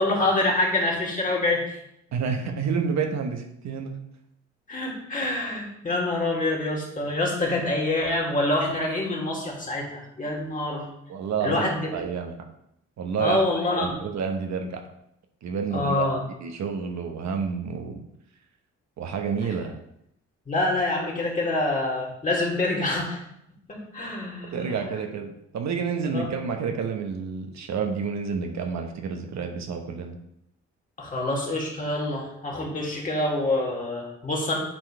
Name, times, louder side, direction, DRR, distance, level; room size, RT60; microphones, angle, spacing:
voice 1, 0.0-1.8 4.7-10.9 11.4-11.9 13.2-14.0 15.7-16.2 20.5-23.2 23.7-24.7 26.0-26.3 31.0-34.6, left 2 dB, 25° left, -3 dB, 2.7 m, -26 dB
voice 2, 2.1-3.9 11.1-12.4 13.0-14.8 15.4-16.1 16.4-18.0 19.0-19.8 24.5-30.2, right 6 dB, 65° right, 4 dB, 1.1 m, -29 dB
9.9 x 4.6 x 3.3 m, 0.76 s
cardioid pair, 90°, 30 cm